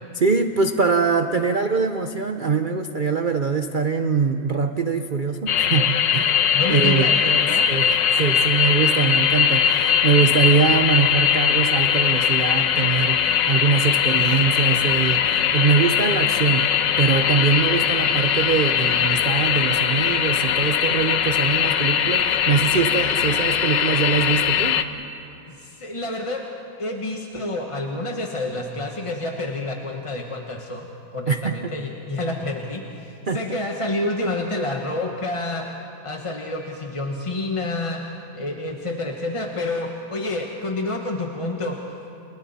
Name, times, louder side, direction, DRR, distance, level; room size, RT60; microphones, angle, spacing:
voice 1, 0.1-6.3 6.7-7.1 7.7-24.8 31.3-31.7 33.3-33.4, right 5 dB, 70° right, 7 dB, 0.4 m, -23 dB
sound 1, 5.5-24.8, left 8 dB, 85° left, 1.5 m, -20 dB
voice 2, 6.5-7.7 25.5-26.5 26.8-35.7 36.0-38.0 38.3-41.8, left 2 dB, 20° left, 1 dB, 1.0 m, -28 dB
30.0 x 29.5 x 4.2 m, 2.7 s
omnidirectional pair, 1.9 m